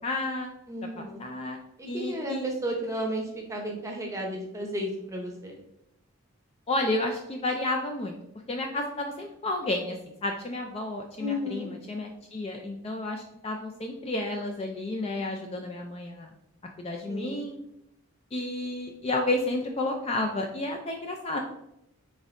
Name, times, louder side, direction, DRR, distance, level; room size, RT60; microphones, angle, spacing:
voice 1, 0.0-0.5 1.2-1.6 1.9-2.5 6.7-8.2 8.5-16.3 16.8-17.6 18.3-21.4, left 2 dB, 25° left, 3 dB, 0.3 m, -31 dB
voice 2, 0.7-1.2 1.8-5.6 11.2-11.7 17.1-17.4, equal, 15° right, 0 dB, 0.7 m, -33 dB
5.2 x 3.6 x 2.5 m, 0.82 s
head